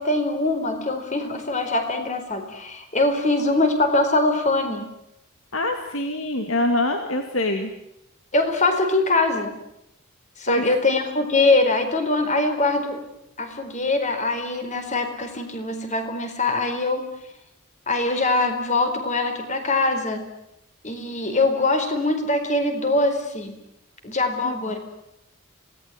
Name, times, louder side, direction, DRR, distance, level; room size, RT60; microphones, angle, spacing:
voice 1, 0.0-4.9 8.3-9.5 10.4-13.0 13.4-17.1 17.9-20.2 20.8-23.5 24.0-24.8, left 2 dB, 35° left, 7 dB, 4.3 m, -23 dB
voice 2, 5.5-7.7 10.5-10.8 24.4-24.5, left 1 dB, 65° left, 5 dB, 2.5 m, -24 dB
26.5 x 19.0 x 9.3 m, 0.82 s
head